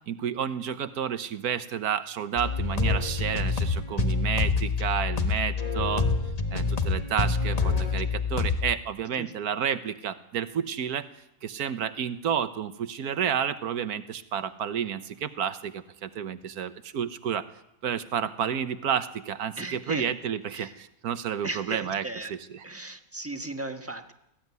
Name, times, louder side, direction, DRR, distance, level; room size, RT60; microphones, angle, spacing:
voice 1, 0.1-6.1 6.5-11.1 11.4-17.5 17.8-22.0 22.3-22.6, right 8 dB, 85° right, 12 dB, 1.5 m, -30 dB
sound 1, 2.4-8.7, left 4 dB, 25° left, 1.4 m, -27 dB
voice 2, 19.6-20.1 20.5-20.7 21.4-22.3 22.6-24.1, right 2 dB, 10° right, 6 dB, 1.3 m, -36 dB
19.0 x 15.0 x 9.5 m, 0.85 s
omnidirectional pair, 1.6 m